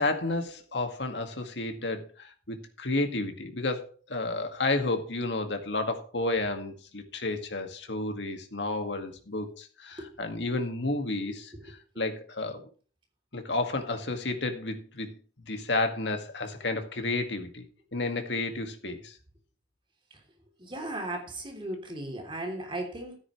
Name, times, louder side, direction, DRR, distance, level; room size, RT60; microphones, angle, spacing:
voice 1, 0.0-12.6 13.3-15.1 15.4-17.6 17.9-19.2, left 2 dB, 80° left, 6 dB, 2.1 m, -31 dB
voice 2, 11.2-11.7 20.6-23.2, right 1 dB, 30° right, 3 dB, 3.2 m, -37 dB
13.5 x 9.7 x 3.2 m, 0.40 s
head